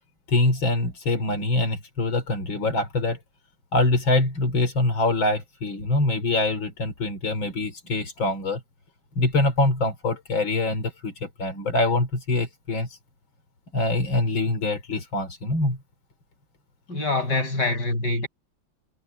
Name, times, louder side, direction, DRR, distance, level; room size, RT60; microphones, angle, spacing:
voice 1, 0.3-3.2 3.7-8.6 9.2-13.0 13.7-15.8, left 2 dB, 80° left, 4.3 m, -24 dB
voice 2, 16.9-18.3, left 2 dB, 55° left, 8.2 m, -25 dB
omnidirectional pair, 2.1 m